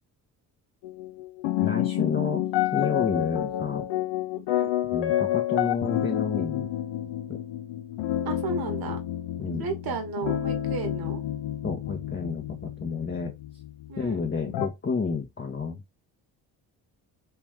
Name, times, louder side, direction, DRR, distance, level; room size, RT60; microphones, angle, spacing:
sound 1, 0.8-14.7, left 12 dB, 70° left, 0.7 m, -29 dB
voice 1, 1.6-2.5 2.7-3.8 4.9-6.7 9.4-9.6 11.6-13.3 14.0-15.8, left 5 dB, 25° left, 0.9 m, -30 dB
voice 2, 8.2-9.0 9.6-11.2 13.9-14.2, right 5 dB, 55° right, 1.3 m, -33 dB
3.3 x 3.1 x 3.4 m
hypercardioid pair, 50°, 45 cm